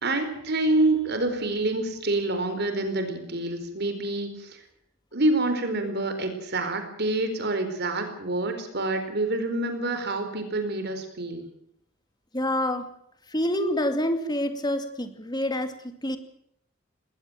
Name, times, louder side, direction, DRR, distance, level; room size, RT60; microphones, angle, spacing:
voice 1, 0.0-4.6 5.1-11.5, right 2 dB, 55° right, 8 dB, 4.4 m, -27 dB
voice 2, 12.3-12.9 13.3-16.2, left 1 dB, 20° left, 8 dB, 2.5 m, -27 dB
20.5 x 19.0 x 7.8 m, 0.73 s
head